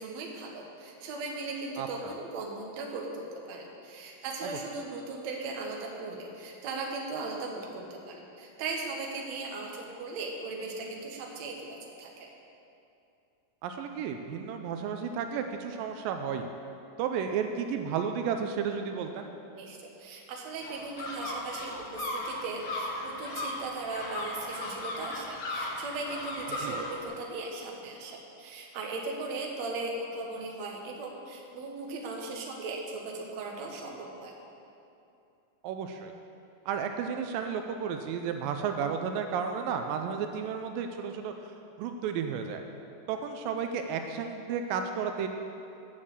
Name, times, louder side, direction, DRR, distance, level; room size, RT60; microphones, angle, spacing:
voice 1, 0.0-12.3 19.5-34.3, right 3 dB, 65° right, 0 dB, 2.1 m, -38 dB
voice 2, 13.6-16.5 17.0-19.3 26.6-26.8 35.6-36.1 36.7-41.3 41.8-42.6 43.1-45.3, right 7 dB, 85° right, 5 dB, 2.3 m, -32 dB
sound 1, 20.6-27.0, left 1 dB, 85° left, 1.0 m, -37 dB
9.2 x 6.4 x 7.3 m, 2.7 s
omnidirectional pair, 4.0 m